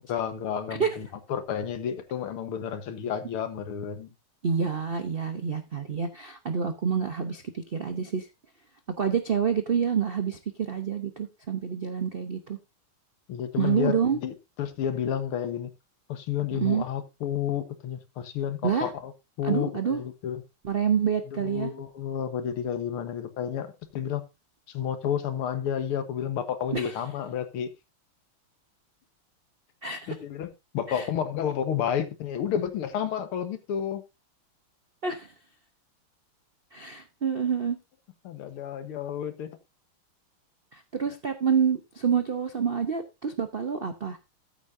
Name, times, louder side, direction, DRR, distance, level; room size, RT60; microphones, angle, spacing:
voice 1, 0.1-4.1 13.3-15.7 16.1-19.1 19.4-20.4 21.3-23.7 23.9-24.2 24.7-27.7 30.1-34.0 38.2-39.5, left 9 dB, 85° left, 2.1 m, -31 dB
voice 2, 4.4-8.3 9.0-12.6 13.6-14.2 16.5-16.8 18.6-18.9 19.4-20.0 20.6-21.7 26.7-26.9 29.8-30.1 30.9-31.0 35.0-35.3 36.7-37.8 40.7-44.2, right 7 dB, 75° right, 0.5 m, -27 dB
13.5 x 8.3 x 2.6 m
omnidirectional pair, 2.4 m